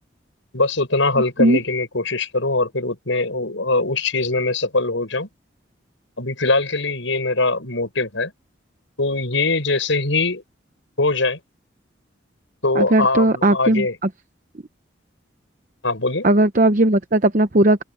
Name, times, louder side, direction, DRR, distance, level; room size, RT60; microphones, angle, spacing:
voice 1, 0.5-5.3 6.2-8.3 9.0-10.4 11.0-11.4 12.6-14.0 15.8-16.3, left 3 dB, 80° left, 6.1 m, -22 dB
voice 2, 12.7-13.9 16.2-17.8, right 1 dB, 40° right, 0.8 m, -17 dB
open air
head